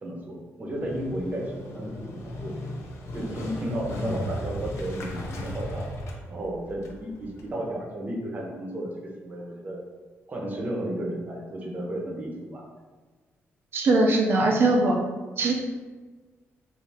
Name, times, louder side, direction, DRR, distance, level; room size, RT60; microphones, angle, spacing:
voice 1, 0.0-2.5 3.1-5.9 6.3-9.8 10.3-12.6, right 1 dB, 35° right, -2 dB, 0.9 m, -33 dB
Motorcycle, 0.7-7.5, left 1 dB, 70° left, 0.6 m, -36 dB
voice 2, 13.7-15.0 15.4-15.5, right 2 dB, 50° right, 0 dB, 0.6 m, -21 dB
3.4 x 2.7 x 4.1 m, 1.3 s
cardioid pair, 135°, 5 cm